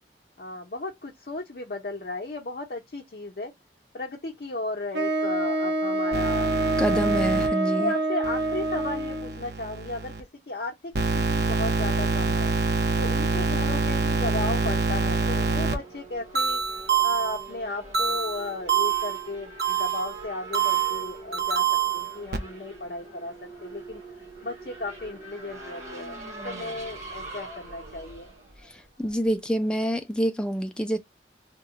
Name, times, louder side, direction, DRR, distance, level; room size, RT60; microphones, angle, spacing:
voice 1, 0.4-3.5 3.9-6.5 6.8-7.2 7.6-10.1 10.5-12.5 13.0-16.6 17.0-21.6 21.9-23.3 23.6-24.0 24.4-28.3, left 2 dB, 55° left, 0.6 m, -35 dB
Wind instrument woodwind instrument, 4.9-9.4, right 2 dB, 85° right, 0.9 m, -26 dB
sound 1, 6.1-7.5 8.2-10.2 10.9-15.7 16.3-17.4 17.9-19.2 19.6-20.1 20.5-22.4, right 5 dB, 65° right, 0.7 m, -26 dB
voice 2, 6.8-7.9 28.7-31.0, equal, 5° left, 0.3 m, -27 dB
Race car auto racing / Accelerating revving vroom, 11.4-29.3, right 2 dB, 40° right, 0.9 m, -44 dB
2.8 x 2.1 x 3.8 m
head